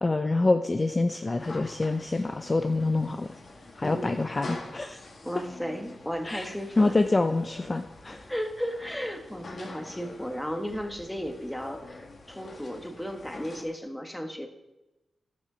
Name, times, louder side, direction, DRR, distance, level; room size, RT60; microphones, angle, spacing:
voice 1, 0.0-3.3 3.8-5.0 6.2-8.3, left 2 dB, 30° left, 7 dB, 0.5 m, -26 dB
sound 1, 1.4-13.6, left 2 dB, 55° left, 1.8 m, -46 dB
voice 2, 3.8-4.1 5.2-6.9 8.3-14.5, equal, 5° left, 4 dB, 1.3 m, -35 dB
12.0 x 7.5 x 6.1 m, 1.0 s
cardioid pair, 85°, 0 cm